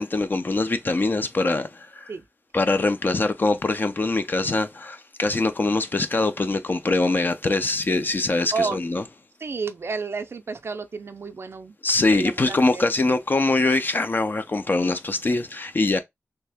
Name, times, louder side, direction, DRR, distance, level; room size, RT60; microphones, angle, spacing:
voice 1, 0.0-2.1 2.5-9.0 11.8-16.0, left 3 dB, 45° left, 0.4 m, -23 dB
voice 2, 9.4-11.8 12.1-12.9, right 4 dB, 65° right, 0.4 m, -31 dB
3.2 x 2.7 x 3.3 m
wide cardioid pair, 65°, 5 cm